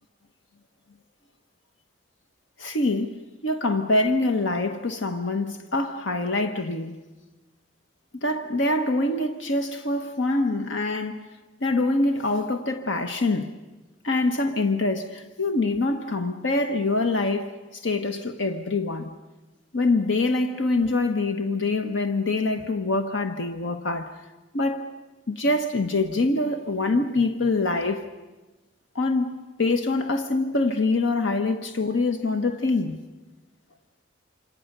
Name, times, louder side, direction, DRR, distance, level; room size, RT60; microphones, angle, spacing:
voice 1, 2.6-7.0 8.2-11.3 11.6-13.5 14.0-17.5 17.8-19.1 19.7-24.1 24.5-24.9 25.3-28.1 28.9-33.0, left 2 dB, 80° left, 1.2 m, -25 dB
27.0 x 26.0 x 6.7 m
head